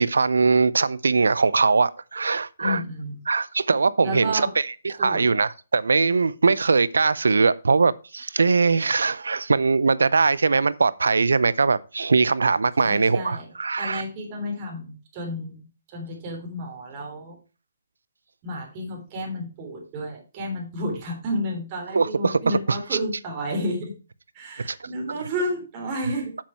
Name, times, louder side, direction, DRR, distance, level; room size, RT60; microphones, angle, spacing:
voice 1, 0.0-2.8 3.3-14.0 21.9-22.8 24.6-24.8, right 4 dB, 85° right, 0.6 m, -21 dB
voice 2, 2.6-3.2 4.0-4.5 4.9-5.3 12.8-13.5 13.8-17.4 18.4-23.9 24.3-26.4, equal, 30° right, 3.5 m, -31 dB
7.3 x 7.3 x 4.5 m
hypercardioid pair, 150°, 0 cm